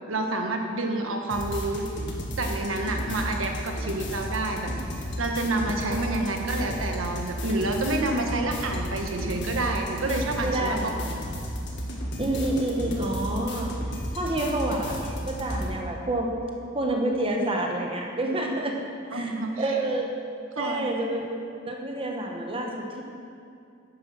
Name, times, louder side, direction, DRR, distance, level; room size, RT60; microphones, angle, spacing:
voice 1, 0.1-1.9 2.4-4.7 5.2-10.8 14.4-14.6 19.1-19.8 20.6-20.9, right 2 dB, 80° right, 2 dB, 1.3 m, -28 dB
sound 1, 1.3-15.7, equal, 60° left, 1.7 m, -33 dB
voice 2, 10.4-10.9 12.2-13.8 14.1-16.3 16.7-18.8 19.1-20.1 20.6-21.3 21.7-23.0, right 1 dB, 30° right, 1 dB, 1.2 m, -28 dB
10.5 x 9.8 x 6.2 m, 2.5 s
head